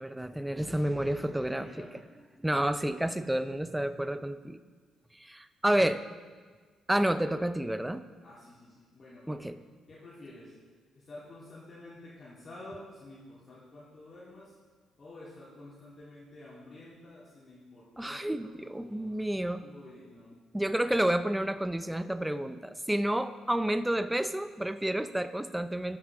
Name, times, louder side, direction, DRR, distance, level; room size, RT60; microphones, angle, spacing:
voice 1, 0.0-1.9 2.4-4.6 5.1-6.0 6.9-8.0 9.3-9.6 18.0-19.7 20.5-26.0, right 1 dB, 5° right, 11 dB, 0.5 m, -30 dB
voice 2, 1.3-1.9 8.2-9.5 9.9-10.5 10.9-14.5 15.0-19.3 19.6-20.3, left 2 dB, 40° left, -9 dB, 3.3 m, -50 dB
12.5 x 8.9 x 3.6 m, 1.5 s
cardioid pair, 90°, 0 cm